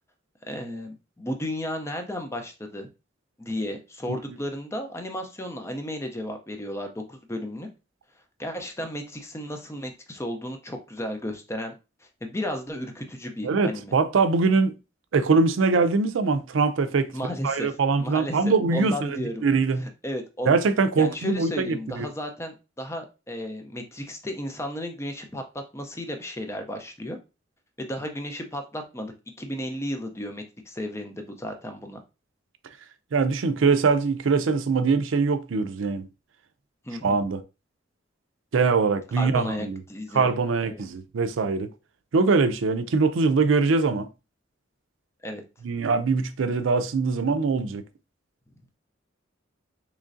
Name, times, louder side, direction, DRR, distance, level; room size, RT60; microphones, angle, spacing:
voice 1, 0.5-2.9 3.4-7.7 8.4-11.7 12.2-13.9 17.1-17.7 18.0-19.4 19.8-20.6 21.0-27.2 27.8-32.0 36.8-37.2 39.1-40.3 40.7-40.8 45.2-45.4, left 1 dB, 15° left, 0.5 m, -34 dB
voice 2, 13.4-14.7 15.1-17.1 17.4-19.1 19.4-19.9 20.5-22.1 33.1-36.1 37.0-37.4 38.5-39.8 40.1-41.7 42.1-44.1 45.6-47.8, right 4 dB, 90° right, 0.5 m, -22 dB
3.7 x 3.1 x 2.5 m
head